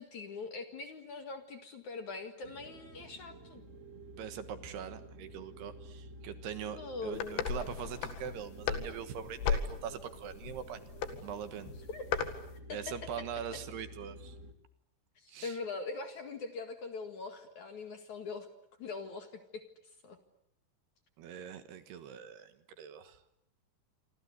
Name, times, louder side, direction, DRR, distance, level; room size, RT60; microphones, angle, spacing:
voice 1, 0.0-3.6 6.7-7.4 11.9-12.4 12.7-13.3 15.2-18.5 18.8-19.3 19.5-19.6 20.0-20.2, left 4 dB, 50° left, 7 dB, 2.7 m, -42 dB
sound 1, 2.4-14.5, right 1 dB, 25° right, 1.8 m, -51 dB
voice 2, 4.2-10.8 11.2-11.7 12.7-14.4 15.3-15.6 21.2-23.2, right 8 dB, 70° right, 10 dB, 3.3 m, -42 dB
sound 2, 7.1-12.4, left 6 dB, 80° left, 4.4 m, -36 dB
28.0 x 25.5 x 8.2 m, 0.73 s
omnidirectional pair, 5.2 m